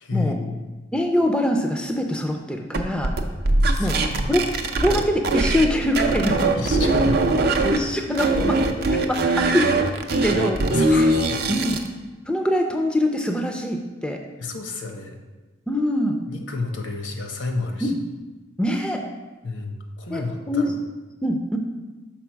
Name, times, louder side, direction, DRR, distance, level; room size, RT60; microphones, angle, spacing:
voice 1, 0.0-0.6 3.6-4.4 6.5-7.3 10.7-11.5 14.4-15.2 16.3-17.9 19.4-20.7, left 3 dB, 75° left, 3 dB, 0.8 m, -30 dB
voice 2, 0.9-3.1 3.8-4.0 4.3-4.5 4.8-6.6 7.7-8.6 8.9-9.7 10.1-10.6 10.9-11.1 11.5-11.8 12.3-14.2 15.7-16.2 17.8-18.0 18.6-19.0 20.1-20.8 21.2-21.6, left 1 dB, 5° left, 3 dB, 0.4 m, -23 dB
sound 1, 2.7-5.7 6.0-7.8 8.2-11.9, right 2 dB, 55° right, 0.5 m, -21 dB
6.0 x 4.5 x 4.5 m, 1.2 s
head